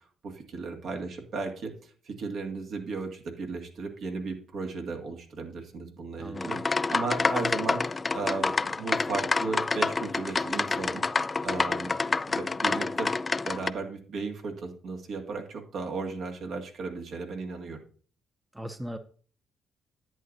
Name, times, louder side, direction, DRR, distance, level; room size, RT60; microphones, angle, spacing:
voice 1, 0.2-6.6 6.9-11.0 11.4-17.8, right 4 dB, 65° right, 3 dB, 2.1 m, -35 dB
voice 2, 6.2-6.7 18.5-19.0, equal, 10° right, 9 dB, 0.7 m, -38 dB
sound 1, 6.4-13.7, left 3 dB, 25° left, 0.3 m, -28 dB
10.5 x 8.7 x 2.7 m, 0.43 s
cardioid pair, 90°, 0 cm